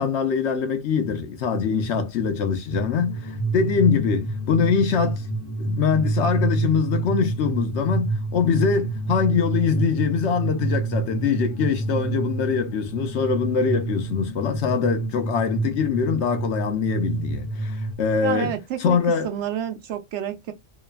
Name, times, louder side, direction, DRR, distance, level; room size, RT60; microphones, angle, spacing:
voice 1, 0.0-5.3 5.6-19.3, left 6 dB, 70° left, 0.9 m, -23 dB
sound 1, 2.7-17.9, right 3 dB, 35° left, 1.0 m, -28 dB
voice 2, 18.2-19.0 19.2-20.5, right 10 dB, 70° right, 0.9 m, -29 dB
2.9 x 2.1 x 2.3 m
omnidirectional pair, 1.3 m